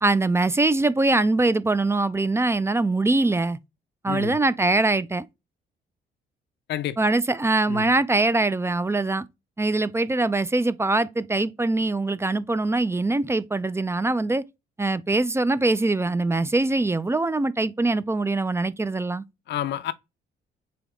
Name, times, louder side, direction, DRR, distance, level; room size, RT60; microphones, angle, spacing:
voice 1, 0.0-3.6 4.0-5.2 7.0-9.3 9.6-14.4 14.8-19.2, right 2 dB, 15° right, 0.3 m, -23 dB
voice 2, 4.1-4.4 6.7-7.0 7.7-7.9 19.5-19.9, left 12 dB, 60° left, 0.5 m, -29 dB
3.9 x 3.4 x 3.5 m
cardioid pair, 90°, 20 cm